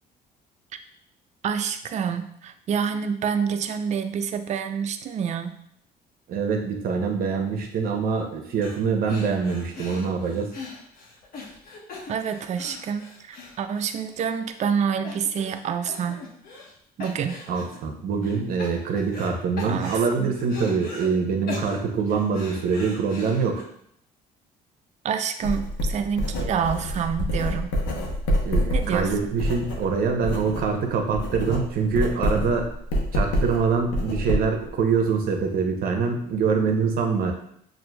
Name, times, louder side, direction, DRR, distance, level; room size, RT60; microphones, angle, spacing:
voice 1, 1.4-5.6 12.1-16.2 17.0-17.4 19.6-20.3 25.0-27.7 28.7-29.1, right 7 dB, 45° right, 8 dB, 0.4 m, -27 dB
voice 2, 6.3-10.5 17.5-23.6 28.4-32.7 33.1-37.3, right 5 dB, 60° right, 3 dB, 0.7 m, -24 dB
sound 1, 8.6-8.8 9.1-14.2 14.6-14.7 15.0-15.6 15.9-16.7 17.0-17.8 18.2-19.3 19.6-21.1 21.5-23.6, left 3 dB, 60° left, 1.0 m, -39 dB
Writing, 25.4-30.7 31.0-34.7, equal, 90° left, 0.8 m, -27 dB
6.1 x 2.5 x 2.2 m, 0.69 s
cardioid pair, 110°, 17 cm